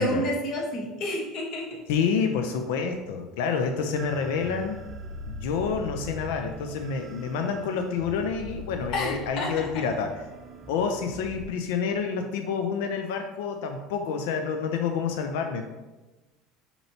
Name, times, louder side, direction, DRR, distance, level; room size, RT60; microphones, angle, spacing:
voice 1, 0.0-1.8 8.9-9.8, left 1 dB, 60° left, -1 dB, 1.2 m, -30 dB
voice 2, 1.9-4.8 5.3-10.2 10.7-15.7, left 6 dB, 85° left, 5 dB, 0.4 m, -28 dB
sound 1, 4.0-11.4, right 2 dB, 35° right, 0.5 m, -42 dB
6.6 x 2.9 x 2.7 m, 1.1 s
supercardioid pair, 120°, 0 cm